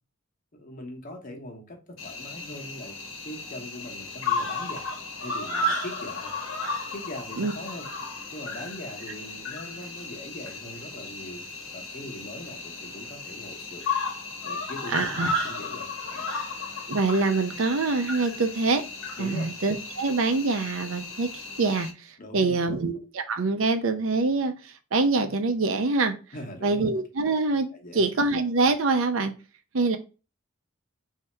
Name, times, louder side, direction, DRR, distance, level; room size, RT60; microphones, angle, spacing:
voice 1, 0.5-3.0 3.2-4.9 5.2-6.3 6.9-7.9 8.3-11.4 11.7-13.8 14.4-16.3 19.2-19.5 22.2-22.8 26.3-26.9 27.7-28.0, left 1 dB, 45° left, 1.1 m, -41 dB
Cricket, 2.0-21.9, left 2 dB, 85° left, 1.1 m, -34 dB
voice 2, 14.9-15.3 16.9-18.8 19.2-21.3 21.6-21.9 22.3-23.0 23.3-26.1 26.6-29.3 29.7-30.0, right 3 dB, 85° right, 0.6 m, -25 dB
3.5 x 2.8 x 4.1 m
head